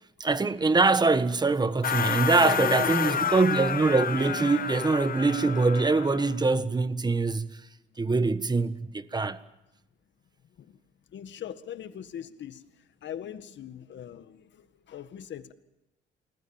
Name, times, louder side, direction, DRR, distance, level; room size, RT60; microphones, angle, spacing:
voice 1, 0.2-7.5 8.0-9.4, right 3 dB, 20° right, 1.5 m, -24 dB
sound 1, 1.8-6.4, left 7 dB, 45° left, 1.1 m, -30 dB
voice 2, 2.4-3.2 10.6-10.8 11.1-12.6 13.0-15.5, left 9 dB, 65° left, 1.9 m, -39 dB
29.0 x 21.0 x 7.3 m
cardioid pair, 90°, 20 cm